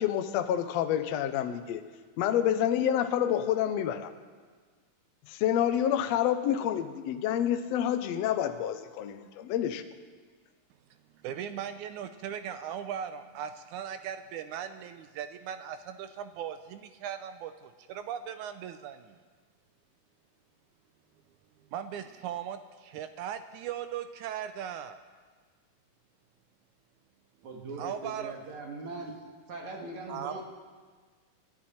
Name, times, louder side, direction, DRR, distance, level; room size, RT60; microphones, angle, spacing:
voice 1, 0.0-1.8 2.2-4.1 5.3-9.8, left 10 dB, 80° left, 9 dB, 1.5 m, -28 dB
voice 2, 11.2-19.2 21.7-25.0 27.6-28.3 30.1-30.4, right 9 dB, 85° right, 10 dB, 1.8 m, -38 dB
voice 3, 27.4-29.2 29.5-30.4, right 2 dB, 60° right, 0 dB, 2.8 m, -40 dB
28.5 x 11.0 x 4.4 m, 1.5 s
omnidirectional pair, 4.1 m